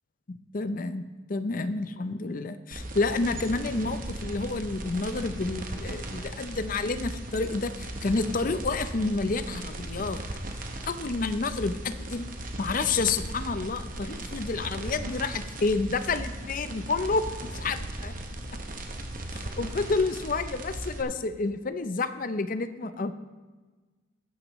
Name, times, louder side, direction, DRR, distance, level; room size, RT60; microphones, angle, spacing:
voice 1, 0.3-10.2 10.9-12.3 12.6-17.3 17.6-18.1 19.3-23.1, left 3 dB, 45° left, 11 dB, 0.5 m, -29 dB
sound 1, 2.7-21.0, right 1 dB, 45° right, 1.0 m, -37 dB
14.0 x 10.5 x 3.1 m, 1.3 s
head